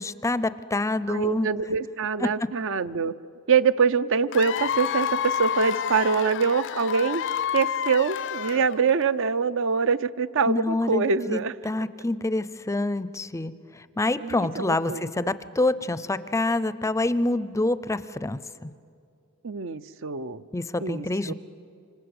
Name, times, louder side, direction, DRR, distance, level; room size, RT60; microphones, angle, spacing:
voice 1, 0.0-1.5 2.2-2.5 10.5-18.7 20.5-21.3, left 2 dB, 15° left, 15 dB, 0.5 m, -27 dB
voice 2, 1.1-3.1 3.5-7.2 7.5-11.5 14.2-15.0 19.4-20.4 20.8-21.3, right 5 dB, 65° right, 13 dB, 0.7 m, -24 dB
Cheering / Applause / Crowd, 4.3-9.0, left 9 dB, 60° left, 0.6 m, -29 dB
28.0 x 25.5 x 7.9 m, 2.4 s
head